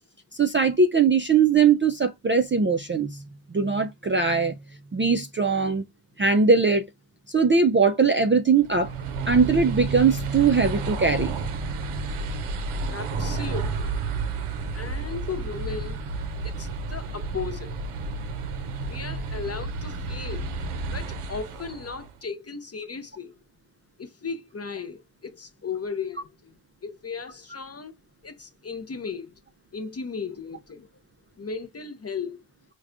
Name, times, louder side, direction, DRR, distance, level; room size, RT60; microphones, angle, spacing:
voice 1, 0.4-3.1 3.5-4.5 4.9-5.8 6.2-6.9 7.3-8.9 9.3-11.3, right 5 dB, 25° right, 0.3 m, -20 dB
sound 1, 8.6-22.1, right 4 dB, 90° right, 0.6 m, -31 dB
voice 2, 12.9-13.9 14.7-16.0 16.4-17.7 18.9-20.5 20.9-23.3 24.0-26.5 26.8-27.9 28.2-29.3 29.7-30.9 31.4-32.4, left 5 dB, 30° left, 0.5 m, -36 dB
4.6 x 2.2 x 2.4 m
cardioid pair, 65°, 49 cm